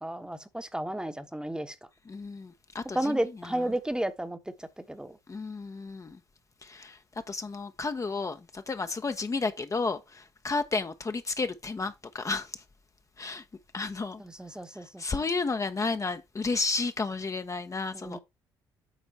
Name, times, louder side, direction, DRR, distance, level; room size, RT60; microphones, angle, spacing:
voice 1, 0.0-1.8 2.9-5.2 14.2-15.2 17.9-18.2, right 1 dB, 5° right, 1.1 m, -33 dB
voice 2, 2.1-3.2 5.3-6.2 6.6-7.0 7.3-12.5 13.2-13.4 13.7-14.2 15.0-18.2, left 3 dB, 30° left, 0.8 m, -32 dB
8.3 x 4.2 x 4.2 m
hypercardioid pair, 55°, 11 cm